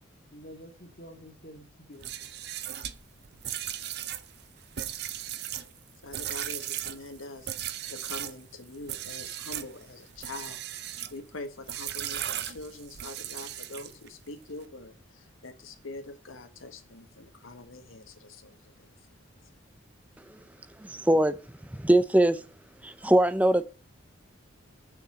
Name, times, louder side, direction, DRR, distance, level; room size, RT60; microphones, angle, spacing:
voice 1, 0.3-2.3, equal, 45° left, 1.9 m, -49 dB
sound 1, 1.9-8.4 8.8-9.7 10.2-11.2 11.7-14.1, right 11 dB, 50° right, 0.6 m, -37 dB
voice 2, 6.0-19.5, left 2 dB, 85° left, 1.5 m, -44 dB
voice 3, 20.8-21.4 21.7-22.4 22.8-23.6, right 1 dB, 5° right, 0.5 m, -22 dB
7.1 x 6.0 x 7.5 m
head